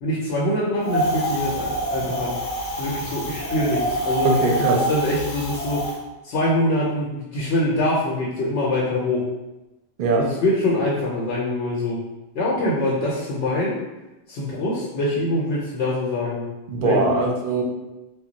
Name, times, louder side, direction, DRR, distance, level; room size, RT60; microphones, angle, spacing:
voice 1, 0.0-2.3 2.8-4.4 4.7-5.8 6.2-9.2 10.2-12.0 12.3-13.8 14.3-16.5 16.8-17.2, left 1 dB, 85° left, -6 dB, 0.9 m, -24 dB
Wind, 0.8-5.9, right 1 dB, 60° left, 0.7 m, -26 dB
voice 2, 4.2-4.8 10.0-10.2 16.7-17.6, right 3 dB, 60° right, 0 dB, 0.6 m, -21 dB
2.2 x 2.0 x 3.8 m, 1.0 s
omnidirectional pair, 1.1 m